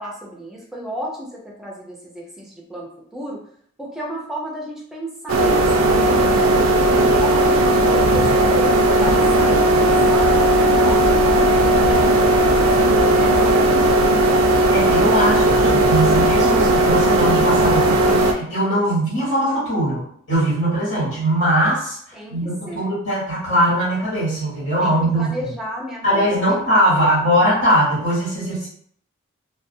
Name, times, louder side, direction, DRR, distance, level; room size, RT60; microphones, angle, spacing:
voice 1, 0.0-3.4 3.8-8.7 9.0-14.6 22.1-22.9 24.8-26.6 26.8-27.1, equal, ahead, -3 dB, 0.4 m, -33 dB
sound 1, 5.3-18.3, right 1 dB, 65° right, 0.3 m, -16 dB
voice 2, 14.7-22.0 22.3-25.3 26.0-28.7, right 1 dB, 65° left, -8 dB, 1.2 m, -20 dB
2.4 x 2.2 x 2.6 m, 0.63 s
head